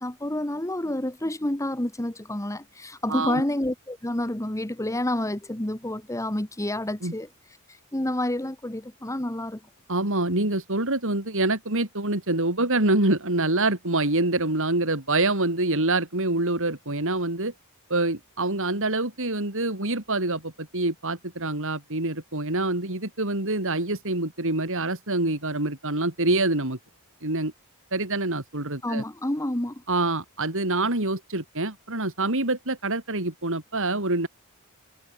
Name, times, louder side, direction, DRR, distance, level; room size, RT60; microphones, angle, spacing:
voice 1, 0.0-9.6 28.8-29.8, left 1 dB, 15° left, 1.4 m, -29 dB
voice 2, 3.1-3.4 7.0-7.1 9.9-17.5 17.9-26.8 27.2-27.5 27.9-29.0 29.9-34.3, right 2 dB, 65° right, 4.9 m, -26 dB
head